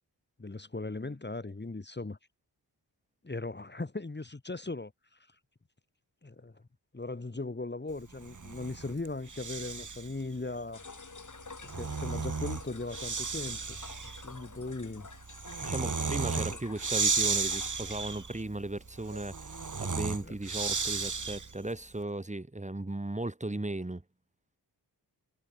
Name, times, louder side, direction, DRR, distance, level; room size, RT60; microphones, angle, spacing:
voice 1, 0.4-2.2 3.2-5.2 6.2-6.6 6.9-10.9 11.7-13.8 14.2-15.1 16.3-16.6 20.2-20.4, left 3 dB, 25° left, 2.9 m, -38 dB
Breathing, 8.2-10.2 11.4-21.7, right 4 dB, 45° right, 5.4 m, -34 dB
sound 1, 10.7-18.5, left 4 dB, 45° left, 6.6 m, -50 dB
voice 2, 15.6-19.5 19.8-24.0, right 2 dB, 15° right, 3.1 m, -36 dB
cardioid pair, 80°, 42 cm